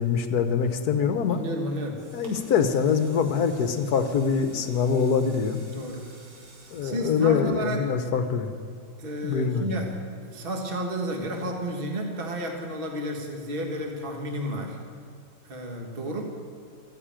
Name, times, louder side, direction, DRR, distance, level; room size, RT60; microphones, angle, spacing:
voice 1, 0.0-1.4 2.1-5.6 6.7-8.5 9.2-9.7, left 6 dB, 60° left, 8 dB, 1.3 m, -24 dB
voice 2, 1.3-2.0 5.7-6.1 6.8-7.8 9.0-14.8 15.4-16.2, right 1 dB, 30° right, 1 dB, 1.6 m, -32 dB
sound 1, 1.9-8.0 8.5-8.6, right 2 dB, 90° right, 2.9 m, -49 dB
15.0 x 9.6 x 9.0 m, 2.1 s
omnidirectional pair, 2.1 m